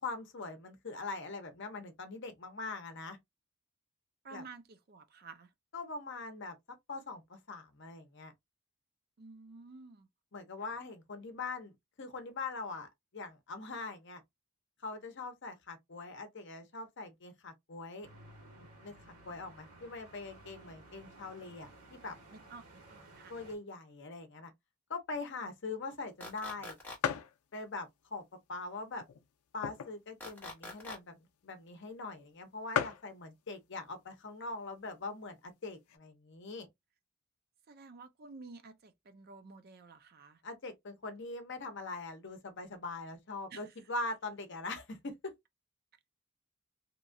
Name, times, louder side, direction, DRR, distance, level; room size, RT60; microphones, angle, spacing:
voice 1, 0.0-3.2 4.3-4.4 5.7-6.5 6.9-8.3 10.3-14.2 14.8-18.1 18.5-18.9 19.3-22.2 23.3-24.5 24.9-26.8 27.5-28.2 28.5-29.0 29.5-36.7 40.4-45.3, left 3 dB, 55° left, 0.7 m, -42 dB
voice 2, 4.2-5.5 9.2-10.1 10.6-10.7 22.3-23.3 37.7-40.4 43.5-43.6, right 4 dB, 45° right, 0.4 m, -52 dB
sound 1, 18.0-23.6, right 2 dB, 85° right, 1.4 m, -56 dB
sound 2, 26.0-26.1 26.5-26.6 27.0-27.4 28.0-28.1 28.9-30.1 30.5-30.6 30.7-31.0 31.7-31.8 32.1-32.2 32.4-32.5 32.7-33.1 34.0-34.3 34.9-35.0 35.2-36.0, left 8 dB, 90° left, 0.4 m, -35 dB
sound 3, 26.2-27.0 30.2-31.0, left 2 dB, 10° left, 0.9 m, -44 dB
2.9 x 2.3 x 2.5 m
head